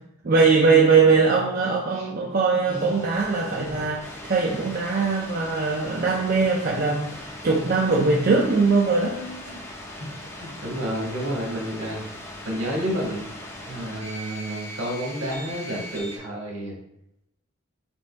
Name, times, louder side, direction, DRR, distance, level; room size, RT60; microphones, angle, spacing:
voice 1, 0.2-7.2 7.4-9.2, right 4 dB, 45° right, -2 dB, 0.5 m, -21 dB
sound 1, 2.7-16.2, left 1 dB, 10° left, 0.5 m, -39 dB
voice 2, 9.2-9.6 10.4-12.0 12.4-13.3 13.6-16.7, equal, 70° right, -2 dB, 1.6 m, -30 dB
5.2 x 2.7 x 3.3 m, 0.82 s
head